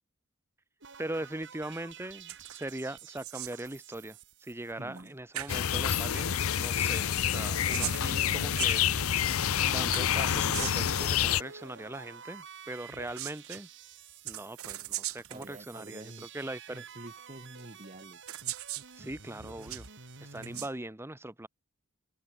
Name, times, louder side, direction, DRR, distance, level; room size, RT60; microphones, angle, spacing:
sound 1, 0.8-5.2 5.5-5.6 5.7-20.7, right 4 dB, 60° right, 4.9 m, -50 dB
voice 1, 1.0-8.9 9.7-13.7 14.2-16.8 19.0-19.9 20.2-21.5, right 1 dB, 10° right, 1.1 m, -40 dB
sound 2, 2.3-2.7 3.0-3.7 4.9-5.1 5.3-5.6 7.4-9.3 9.9-10.9 12.9-13.6 14.2-15.5 16.4-16.5 17.6-17.7 18.3-18.9 19.4-19.9 20.3-20.7, right 14 dB, 80° right, 1.4 m, -39 dB
voice 2, 4.8-5.2 15.3-16.3 16.7-18.4, right 1 dB, 35° right, 3.7 m, -48 dB
sound 3, 5.5-11.4, left 9 dB, 75° left, 0.7 m, -28 dB
head